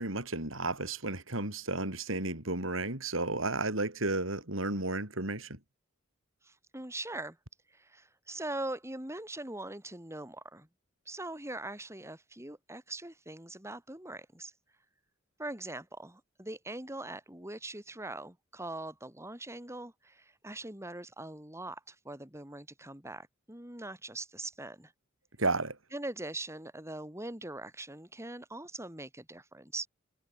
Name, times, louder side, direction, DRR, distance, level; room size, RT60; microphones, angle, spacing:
voice 1, 0.0-5.6 25.4-25.8, right 2 dB, 75° right, 5.6 m, -33 dB
voice 2, 6.4-7.4 7.7-10.7 11.1-14.5 15.4-24.9 25.9-29.9, right 2 dB, 15° right, 4.3 m, -42 dB
head